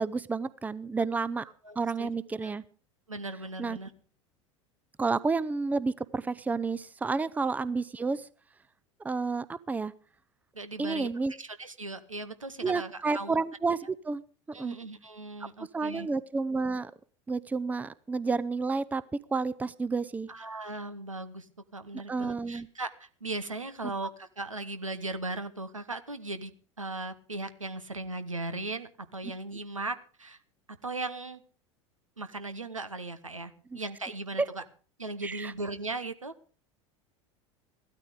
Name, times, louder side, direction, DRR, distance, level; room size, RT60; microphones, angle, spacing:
voice 1, 0.0-1.4 1.8-2.6 3.6-3.8 5.0-8.3 9.0-9.9 10.8-11.3 12.6-14.2 14.5-14.8 15.7-16.9 17.3-19.0 19.3-20.3 22.1-22.7 23.8-23.9 35.2-35.5, right 4 dB, 10° right, 17 dB, 0.6 m, -30 dB
voice 2, 1.6-2.1 2.4-2.5 3.1-3.9 10.5-11.1 11.4-13.4 14.5-16.1 20.3-26.5 26.8-30.4 30.8-31.4 32.2-34.6 35.0-36.3, right 2 dB, 85° right, 11 dB, 1.1 m, -38 dB
15.5 x 13.0 x 5.0 m, 0.41 s
figure-of-eight pair, 75°, 16 cm